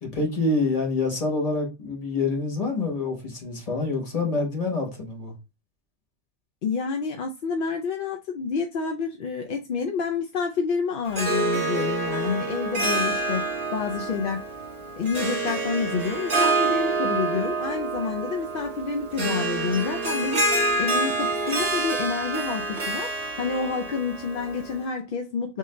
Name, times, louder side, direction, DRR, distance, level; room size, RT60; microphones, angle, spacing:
voice 1, 0.0-5.4, left 3 dB, 30° left, 1.2 m, -26 dB
voice 2, 6.6-14.5 15.0-20.5 20.8-25.6, left 5 dB, 60° left, 0.5 m, -28 dB
Harp, 11.1-24.8, right 2 dB, 25° right, 1.0 m, -27 dB
3.7 x 2.6 x 3.1 m
omnidirectional pair, 1.3 m